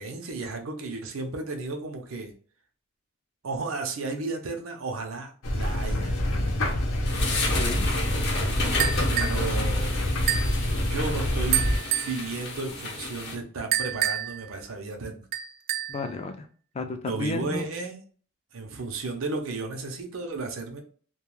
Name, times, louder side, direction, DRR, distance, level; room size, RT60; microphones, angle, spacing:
voice 1, 0.0-2.3 3.4-6.2 9.1-10.0 10.9-11.6 12.0-15.2 17.0-18.0 18.5-20.8, right 3 dB, 90° right, 4 dB, 0.6 m, -33 dB
sound 1, 5.4-11.8, left 1 dB, 90° left, 0.7 m, -26 dB
sound 2, 7.1-13.4, left 3 dB, 50° left, 0.7 m, -32 dB
sound 3, 8.8-9.5 10.3-10.6 11.5-12.2 13.7-14.4 15.3-16.0, right 10 dB, 45° right, 0.3 m, -27 dB
voice 2, 15.9-16.5 16.7-17.7, left 3 dB, 30° left, 6 dB, 0.4 m, -32 dB
2.2 x 2.2 x 3.0 m, 0.43 s
head